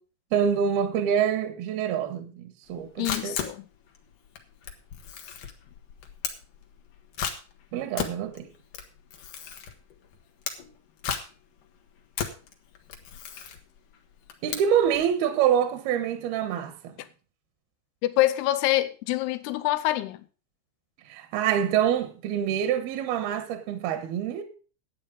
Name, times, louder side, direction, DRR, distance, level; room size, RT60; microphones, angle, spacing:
voice 1, 0.3-3.4 7.7-8.5 14.4-16.9 21.1-24.4, right 9 dB, 70° right, 2.7 m, -26 dB
Camera, 2.7-15.1, left 8 dB, 60° left, 2.3 m, -36 dB
voice 2, 3.0-3.7 18.0-20.2, left 15 dB, 80° left, 2.5 m, -25 dB
11.0 x 8.7 x 5.3 m
omnidirectional pair, 5.2 m